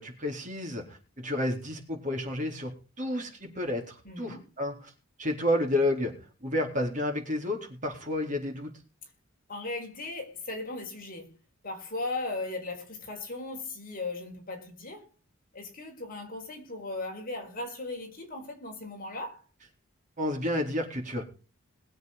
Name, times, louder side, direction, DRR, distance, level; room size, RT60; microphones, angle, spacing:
voice 1, 0.0-4.9 5.2-8.7 20.2-21.2, left 1 dB, 40° right, 4.1 m, -31 dB
voice 2, 4.0-4.5 9.5-11.4 11.6-15.1 15.5-19.4, left 2 dB, 45° left, 4.7 m, -37 dB
21.0 x 8.0 x 5.2 m
head